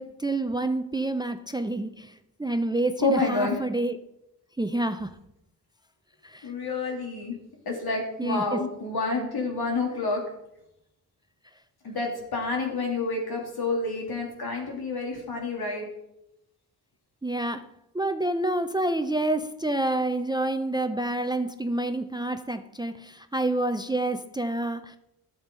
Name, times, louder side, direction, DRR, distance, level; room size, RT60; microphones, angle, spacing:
voice 1, 0.0-2.1 2.4-4.0 4.6-5.2 6.2-6.5 8.2-8.6 17.2-25.0, right 2 dB, 10° right, 10 dB, 0.4 m, -28 dB
voice 2, 3.0-3.6 6.4-7.4 7.6-10.2 11.8-15.9, left 3 dB, 75° left, 0 dB, 2.9 m, -28 dB
13.0 x 7.3 x 3.8 m, 0.83 s
wide cardioid pair, 125°, 38 cm